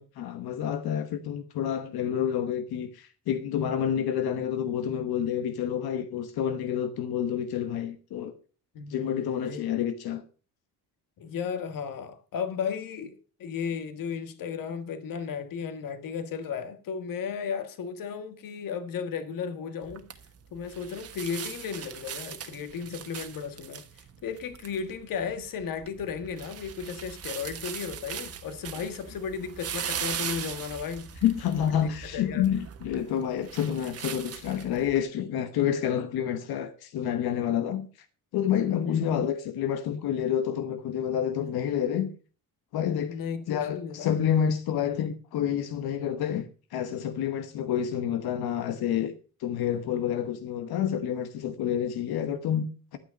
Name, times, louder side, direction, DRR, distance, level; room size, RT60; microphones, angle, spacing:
voice 1, 0.2-8.3 8.9-10.2 31.2-37.9 38.3-42.1 42.7-43.2 43.5-49.1 49.4-53.0, left 9 dB, 85° left, 1.1 m, -28 dB
voice 2, 8.7-9.7 11.2-20.1 20.5-23.8 24.2-31.1 31.8-32.4 38.8-39.1 43.1-44.1, left 6 dB, 65° left, 1.6 m, -35 dB
sound 1, 19.8-35.0, right 8 dB, 40° right, 1.2 m, -40 dB
11.5 x 9.0 x 5.2 m
cardioid pair, 170°, 36 cm